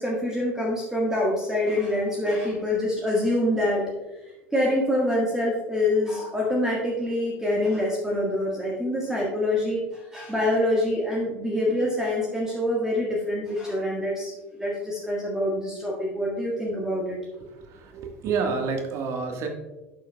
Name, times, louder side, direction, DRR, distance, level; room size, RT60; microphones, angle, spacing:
voice 1, 0.0-3.8 4.5-17.2, left 1 dB, 10° right, -4 dB, 1.6 m, -25 dB
voice 2, 17.4-19.5, right 5 dB, 45° right, 3 dB, 1.5 m, -29 dB
11.0 x 7.9 x 2.3 m, 1.1 s
figure-of-eight pair, 70°, 7 cm